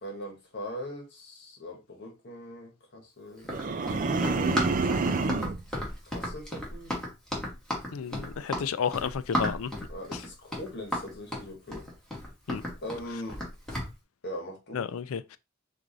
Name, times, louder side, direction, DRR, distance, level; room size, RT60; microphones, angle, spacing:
voice 1, 0.0-4.7 6.1-6.9 9.9-11.9 12.8-13.4 14.2-14.9, left 1 dB, 55° left, 1.4 m, -41 dB
Run, 3.4-13.9, left 1 dB, 5° left, 1.5 m, -34 dB
sound 1, 3.5-5.6, right 3 dB, 40° right, 0.4 m, -27 dB
voice 2, 7.9-9.7 12.5-12.6 14.7-15.4, left 7 dB, 90° left, 0.4 m, -32 dB
4.7 x 2.6 x 3.9 m
head